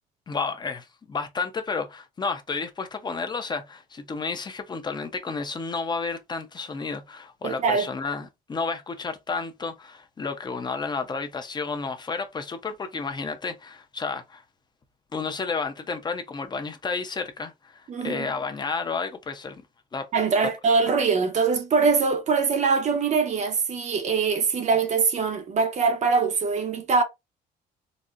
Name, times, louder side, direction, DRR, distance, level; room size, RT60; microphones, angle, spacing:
voice 1, 0.3-14.4 15.1-19.6 19.9-20.1, left 4 dB, 25° left, 0.6 m, -31 dB
voice 2, 7.4-7.9 17.9-18.3 20.1-27.0, right 5 dB, 45° right, 0.7 m, -23 dB
4.1 x 2.1 x 2.4 m
cardioid pair, 110°, 17 cm